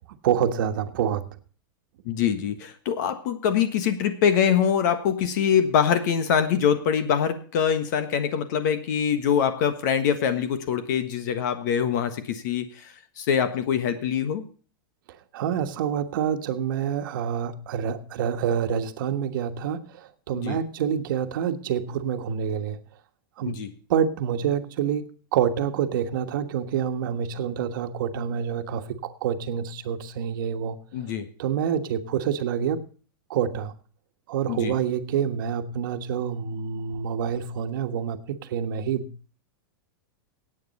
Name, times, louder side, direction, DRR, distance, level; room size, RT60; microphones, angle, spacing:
voice 1, 0.2-1.2 15.3-22.8 23.4-23.6 23.9-30.8 31.4-32.8 33.3-33.7 34.3-39.1, right 8 dB, 65° right, 8 dB, 1.4 m, -27 dB
voice 2, 2.0-14.4 20.3-20.6 23.5-23.7 30.9-31.2 34.5-34.7, left 8 dB, 55° left, 10 dB, 1.4 m, -24 dB
17.0 x 8.7 x 4.2 m, 0.41 s
supercardioid pair, 155°, 12 cm